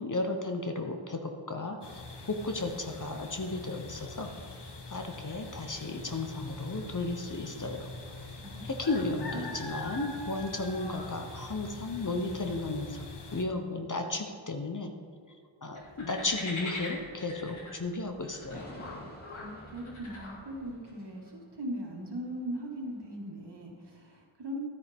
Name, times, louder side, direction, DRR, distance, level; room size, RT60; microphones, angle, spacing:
voice 1, 0.0-2.0 2.4-4.3 4.9-7.9 8.8-14.9 15.6-18.7, left 2 dB, 40° left, 5 dB, 0.9 m, -34 dB
sound 1, 1.8-13.4, left 3 dB, 55° left, 1.3 m, -43 dB
voice 2, 8.4-8.7 9.1-9.5 19.4-24.6, equal, 55° right, -1 dB, 2.2 m, -39 dB
sound 2, 15.7-20.7, left 2 dB, 75° left, 2.4 m, -42 dB
sound 3, 18.5-23.9, left 1 dB, 20° left, 2.5 m, -52 dB
12.5 x 9.3 x 3.6 m, 2.1 s
wide cardioid pair, 75°, 48 cm